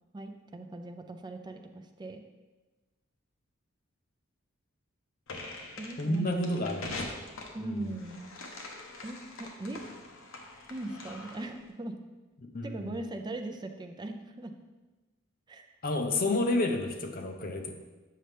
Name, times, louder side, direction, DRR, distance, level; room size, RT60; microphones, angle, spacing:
voice 1, 0.1-2.2 5.8-6.6 7.5-8.3 9.0-9.8 10.7-12.0 12.6-14.5 15.5-15.8, right 2 dB, 20° right, 5 dB, 0.5 m, -39 dB
sound 1, 5.3-11.6, left 2 dB, 70° left, 1.0 m, -43 dB
voice 2, 6.0-7.2 7.6-8.0 12.5-13.0 15.8-17.7, left 2 dB, 45° left, 4 dB, 0.7 m, -30 dB
7.6 x 5.5 x 3.4 m, 1.2 s
head